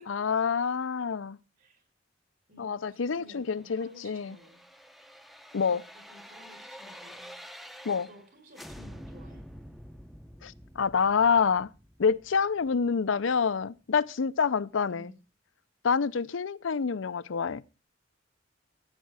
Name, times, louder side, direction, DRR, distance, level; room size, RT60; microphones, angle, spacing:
voice 1, 0.1-1.4 2.6-4.3 5.5-5.8 7.8-8.1 10.4-11.7 12.0-15.1 15.8-17.6, left 6 dB, 80° left, 0.5 m, -27 dB
voice 2, 2.5-4.7 5.6-7.5 8.1-9.5 12.9-13.1 14.9-15.2, left 1 dB, 50° right, 4.3 m, -54 dB
sound 1, 3.5-8.3 8.5-13.4 13.8-13.9, equal, ahead, 0.7 m, -48 dB
15.0 x 9.1 x 4.8 m
head